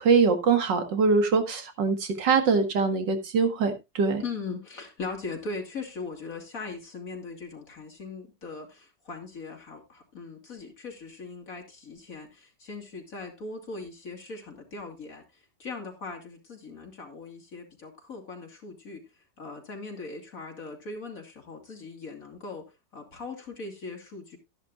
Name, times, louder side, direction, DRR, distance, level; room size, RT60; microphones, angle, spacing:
voice 1, 0.0-4.2, right 5 dB, 90° right, 2.4 m, -23 dB
voice 2, 4.2-19.0 19.4-24.4, left 3 dB, 50° left, 3.0 m, -40 dB
13.5 x 11.0 x 2.5 m
omnidirectional pair, 1.9 m